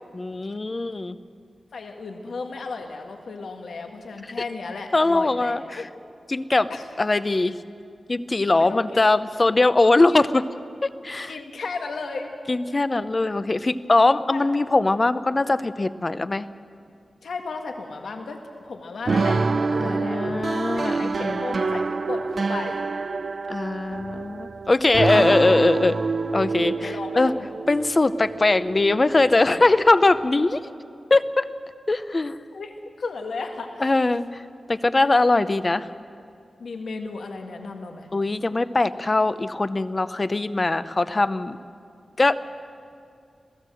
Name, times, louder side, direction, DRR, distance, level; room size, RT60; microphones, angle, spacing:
voice 1, 0.1-1.2 4.9-5.8 6.3-6.7 7.0-7.6 8.1-10.4 10.8-11.4 12.5-16.4 19.8-21.4 23.5-26.0 26.3-27.3 27.7-30.6 31.1-31.5 31.9-32.4 33.8-34.4 34.7-35.9 38.1-41.6 42.2-42.3, left 2 dB, 30° left, 14 dB, 0.6 m, -21 dB
voice 2, 1.7-5.9 6.7-6.9 8.5-9.1 10.1-10.2 11.3-12.3 14.3-14.5 17.2-19.4 19.7-20.4 20.8-22.8 24.9-25.6 26.6-27.5 29.6-29.7 32.5-32.7 33.0-34.2 35.3-35.4 36.6-38.1, left 4 dB, 85° left, 3 dB, 1.8 m, -34 dB
sound 1, 19.1-30.5, right 4 dB, 50° right, 0.6 m, -27 dB
27.0 x 17.5 x 7.7 m, 2.4 s
wide cardioid pair, 155°, 0 cm